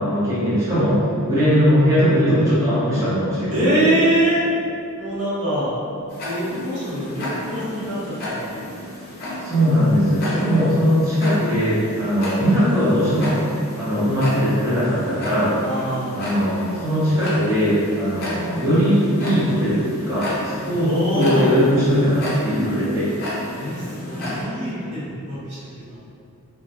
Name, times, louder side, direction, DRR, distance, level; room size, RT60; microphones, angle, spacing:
voice 1, 0.0-3.9 9.4-13.4 13.7-15.5 16.1-23.1, equal, 15° right, -13 dB, 0.7 m, -20 dB
voice 2, 3.5-4.4 5.0-5.7 6.2-8.6 10.2-10.5 15.6-16.1 20.7-21.5 23.5-26.0, right 1 dB, 75° right, -10 dB, 0.9 m, -24 dB
Tick-tock, 6.1-24.4, left 1 dB, 45° left, 0.5 m, -32 dB
2.2 x 2.1 x 2.7 m, 2.5 s
head